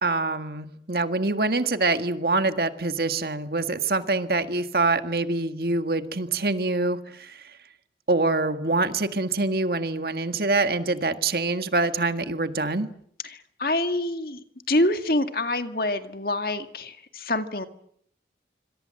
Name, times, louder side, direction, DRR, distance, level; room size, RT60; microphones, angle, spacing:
voice 1, 0.0-7.5 8.1-12.9, right 3 dB, 55° right, 9 dB, 1.8 m, -25 dB
voice 2, 13.2-14.4 14.7-17.7, left 1 dB, 55° left, 8 dB, 2.1 m, -26 dB
26.5 x 26.0 x 7.8 m, 0.68 s
head